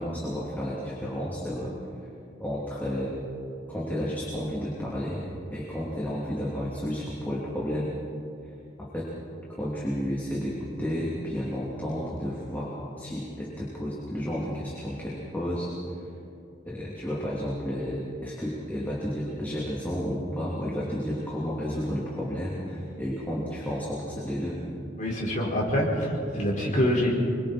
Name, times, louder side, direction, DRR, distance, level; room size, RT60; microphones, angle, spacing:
voice 1, 0.0-1.7 2.4-3.2 3.7-5.2 5.5-7.9 8.8-9.1 9.6-15.7 16.7-24.6, equal, 10° left, -6 dB, 3.0 m, -32 dB
voice 2, 25.0-27.1, equal, 40° left, -3 dB, 5.1 m, -25 dB
27.0 x 23.5 x 4.4 m, 2.6 s
head